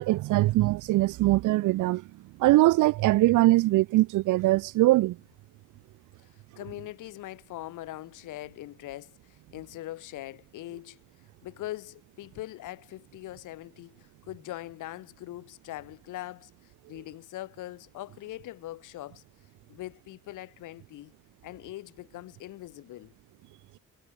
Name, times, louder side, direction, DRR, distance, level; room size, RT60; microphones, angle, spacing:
voice 1, 0.0-2.0 2.4-5.2, right 18 dB, 85° right, 0.7 m, -22 dB
voice 2, 6.3-11.0 11.4-19.2 19.7-21.1 21.4-23.1, left 15 dB, 85° left, 3.1 m, -42 dB
cardioid pair, 90°, 30 cm